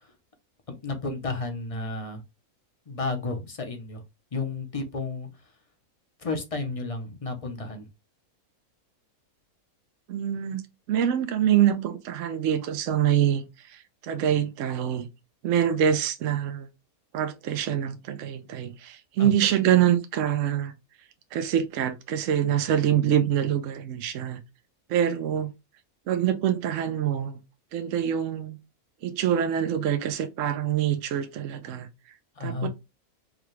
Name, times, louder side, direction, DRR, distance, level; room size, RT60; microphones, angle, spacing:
voice 1, 0.7-2.2 2.9-4.0 4.3-5.3 6.2-7.9 19.2-19.3 32.4-32.7, left 3 dB, 30° left, 0.6 m, -32 dB
voice 2, 10.1-10.6 10.9-15.1 15.4-16.7 17.1-20.7 21.3-24.4 24.9-25.5 26.1-27.4 27.7-28.6 29.0-31.9 32.4-32.7, right 10 dB, 70° right, 0.9 m, -25 dB
4.8 x 2.3 x 3.1 m
omnidirectional pair, 1.5 m